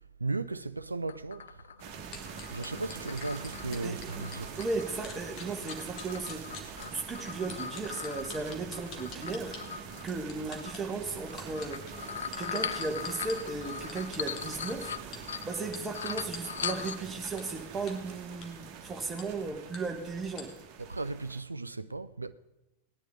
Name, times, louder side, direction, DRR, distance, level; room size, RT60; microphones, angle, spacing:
voice 1, 0.2-1.6 2.5-4.6 20.8-22.3, right 3 dB, 80° right, 0.4 m, -36 dB
sound 1, 1.1-5.3 5.7-10.1 10.5-10.8 11.3-15.7 15.9-17.2, left 7 dB, 65° left, 0.4 m, -40 dB
sound 2, 1.8-21.4, right 6 dB, 45° right, 1.6 m, -45 dB
sound 3, 2.1-4.7 5.0-6.9 7.5-9.6 10.1-10.8 11.3-13.4 13.9-14.4 15.1-15.2 15.7-15.8 16.3-16.4 16.9-17.0 17.4-17.5 17.9-18.0 18.3-18.5 19.2-19.3 19.7-19.8 20.4-20.5, left 5 dB, 35° left, 2.0 m, -44 dB
voice 2, 3.8-4.2 4.6-6.6 6.9-12.0 12.4-14.9 15.4-20.5, right 3 dB, 15° right, 1.7 m, -36 dB
18.0 x 10.5 x 3.9 m
figure-of-eight pair, 90°, 0 cm